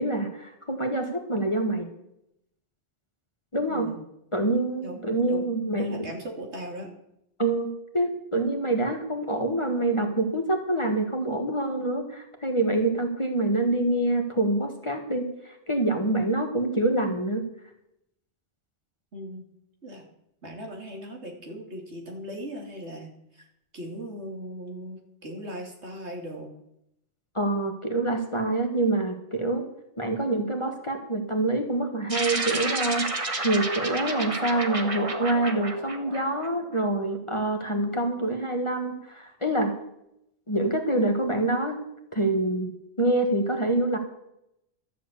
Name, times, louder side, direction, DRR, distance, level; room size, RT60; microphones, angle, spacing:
voice 1, 0.0-1.9 3.5-3.9 4.3-6.1 7.4-17.4 27.3-29.7 30.0-39.7 40.5-41.8 42.1-44.0, right 2 dB, 25° left, 3 dB, 1.5 m, -26 dB
voice 2, 3.7-4.0 4.8-5.5 5.8-6.9 19.1-19.4 19.8-20.0 20.4-23.4 23.7-26.5, equal, 65° right, 1 dB, 2.9 m, -38 dB
sound 1, 32.1-36.8, right 2 dB, 30° right, 1.2 m, -31 dB
13.0 x 7.6 x 8.3 m, 0.81 s
omnidirectional pair, 1.2 m